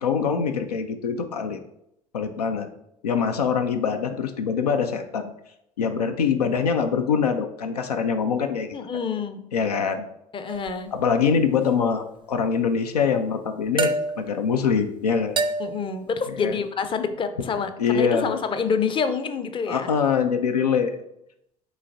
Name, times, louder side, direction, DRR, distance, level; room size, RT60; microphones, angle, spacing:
voice 1, 0.0-1.6 2.1-2.7 3.0-5.3 5.8-8.8 9.5-10.1 10.9-15.4 16.4-16.6 17.8-18.4 19.7-21.0, left 6 dB, 85° left, 7 dB, 0.4 m, -24 dB
voice 2, 8.7-9.4 10.3-10.9 15.6-19.9, left 5 dB, 25° left, 9 dB, 0.5 m, -27 dB
sound 1, 10.5-10.9 13.8-14.4 15.4-15.9, right 3 dB, 25° right, 0.4 m, -27 dB
6.2 x 3.0 x 2.6 m, 0.78 s
figure-of-eight pair, 65°, 20 cm